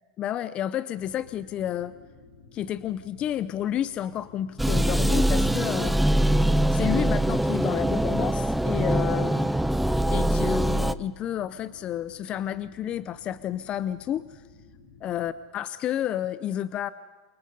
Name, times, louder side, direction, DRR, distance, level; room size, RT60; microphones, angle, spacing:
voice 1, 0.2-1.9 2.5-6.0 6.7-9.5 10.1-14.4 15.0-16.9, left 11 dB, 35° left, 16 dB, 0.7 m, -30 dB
sound 1, 1.0-15.3, left 4 dB, 80° left, 4.7 m, -53 dB
sound 2, 4.6-10.9, right 1 dB, 5° right, 0.6 m, -23 dB
29.0 x 24.5 x 5.5 m, 1.5 s
supercardioid pair, 125°, 3 cm